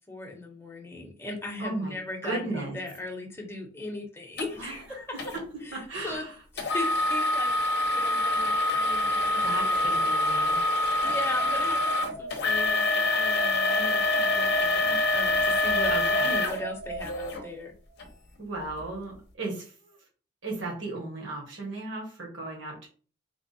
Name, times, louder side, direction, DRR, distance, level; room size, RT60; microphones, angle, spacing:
voice 1, 0.1-5.0 6.0-6.2 6.5-9.9 11.0-17.7, left 2 dB, 15° left, 0 dB, 0.8 m, -38 dB
voice 2, 1.6-1.9 2.2-2.8 4.6-5.4 5.7-6.3 9.4-10.6 15.9-16.4 18.4-20.0 20.4-22.9, right 2 dB, 70° right, -2 dB, 1.5 m, -36 dB
sound 1, 4.4-4.5 5.2-5.4 6.6-17.4 18.0-18.1 18.7-18.8, left 2 dB, 55° left, 0.7 m, -25 dB
sound 2, 11.0-12.8 13.3-15.2 15.8-17.6, right 2 dB, 90° right, 0.6 m, -40 dB
3.5 x 2.1 x 4.0 m, 0.39 s
head